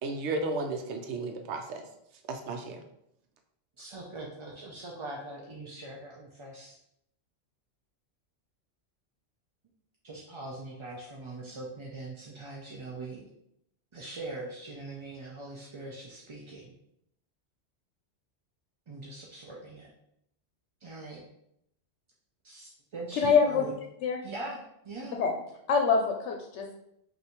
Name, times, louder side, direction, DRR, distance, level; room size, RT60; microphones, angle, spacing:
voice 1, 0.0-1.8 2.3-2.8, right 3 dB, 80° right, 5 dB, 0.9 m, -33 dB
voice 2, 3.8-6.8 10.0-13.3 13.9-16.7 18.9-19.9 20.8-21.2 22.4-23.7 24.2-25.2, right 2 dB, 40° right, -3 dB, 0.4 m, -42 dB
voice 3, 23.1-23.7 24.0-24.2 25.1-25.3 25.7-26.7, left 5 dB, 85° left, 2 dB, 0.9 m, -25 dB
5.5 x 2.6 x 3.0 m, 0.76 s
omnidirectional pair, 1.2 m